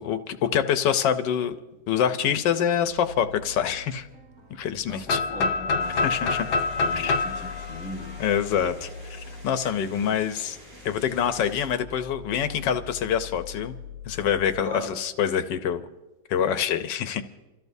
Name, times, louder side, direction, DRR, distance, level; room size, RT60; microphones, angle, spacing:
voice 1, 0.0-1.6 1.9-4.1 4.6-5.2 6.0-6.5 6.9-7.2 8.2-10.6 10.8-13.7 14.0-15.8 16.3-17.2, left 8 dB, 90° left, 1.4 m, -25 dB
sound 1, 2.9-14.6, left 6 dB, 25° right, 1.6 m, -43 dB
voice 2, 4.9-6.0 6.8-8.2 9.6-10.2 14.6-15.0, left 2 dB, 5° left, 1.9 m, -38 dB
sound 2, 5.1-8.9, left 3 dB, 70° left, 1.4 m, -27 dB
sound 3, 5.8-11.7, right 1 dB, 55° right, 6.7 m, -48 dB
28.5 x 14.0 x 2.7 m
omnidirectional pair, 1.9 m